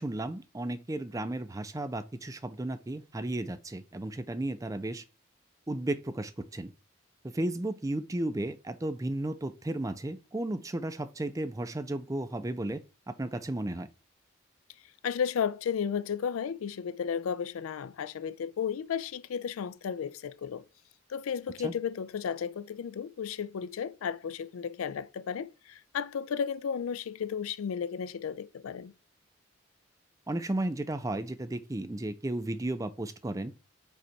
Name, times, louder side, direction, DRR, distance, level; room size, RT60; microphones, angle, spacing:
voice 1, 0.0-5.0 5.7-6.7 7.2-12.8 13.1-13.9 21.6-21.7 30.3-33.5, right 1 dB, 15° right, 0.4 m, -34 dB
voice 2, 15.0-20.6 21.1-28.9, left 7 dB, 85° left, 0.4 m, -33 dB
5.2 x 4.2 x 4.5 m
head